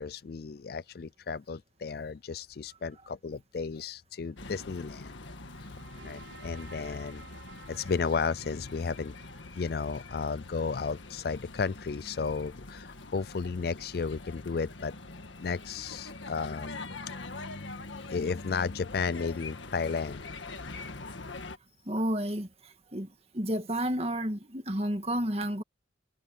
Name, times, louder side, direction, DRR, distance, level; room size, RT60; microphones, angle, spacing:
voice 1, 0.0-5.2 5.6-5.8 6.0-7.2 7.7-9.1 9.5-14.9 15.4-16.9 18.1-20.3, left 5 dB, 55° left, 0.4 m, -33 dB
sound 1, 4.4-21.6, left 3 dB, 85° left, 1.8 m, -44 dB
sound 2, 4.8-10.7, right 4 dB, 85° right, 5.0 m, -54 dB
voice 2, 21.9-23.1 23.3-25.6, equal, 35° right, 1.9 m, -31 dB
head